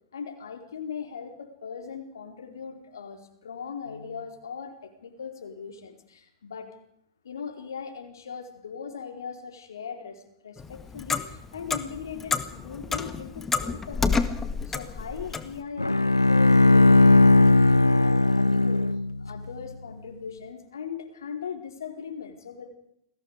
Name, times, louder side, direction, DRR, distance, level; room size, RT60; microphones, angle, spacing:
voice 1, 0.1-6.7 7.2-14.2 14.7-18.8 19.2-22.7, left 6 dB, 65° left, 5 dB, 4.6 m, -39 dB
Clock, 10.6-15.6, left 4 dB, 15° left, 1.9 m, -29 dB
Bowed string instrument, 15.8-19.3, left 2 dB, 90° left, 0.7 m, -18 dB
29.5 x 20.5 x 5.0 m, 0.75 s
figure-of-eight pair, 100°, 2 cm